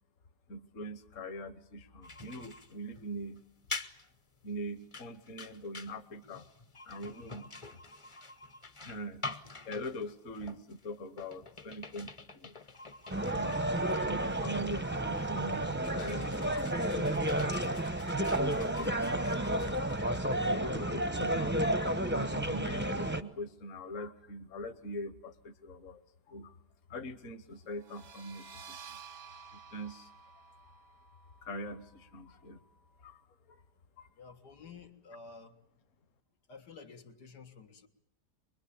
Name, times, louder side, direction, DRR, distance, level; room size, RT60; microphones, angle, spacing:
voice 1, 0.5-3.4 4.4-6.5 6.8-7.5 8.8-9.3 9.7-12.5 13.3-16.6 16.9-17.5 18.2-19.3 20.3-26.0 26.3-26.6 26.9-29.0 29.3-30.1 31.4-32.6 33.0-33.2 33.5-33.6 34.0-34.1, equal, 55° left, 9 dB, 1.4 m, -43 dB
sound 1, 2.0-20.4, left 3 dB, 25° left, 0.8 m, -47 dB
sound 2, 13.1-23.2, right 1 dB, 10° right, 0.6 m, -31 dB
sound 3, 27.7-33.2, right 6 dB, 85° right, 1.8 m, -53 dB
voice 2, 34.2-35.5 36.5-37.9, left 4 dB, 90° left, 4 dB, 2.4 m, -51 dB
24.5 x 22.0 x 8.6 m, 0.74 s
omnidirectional pair, 1.7 m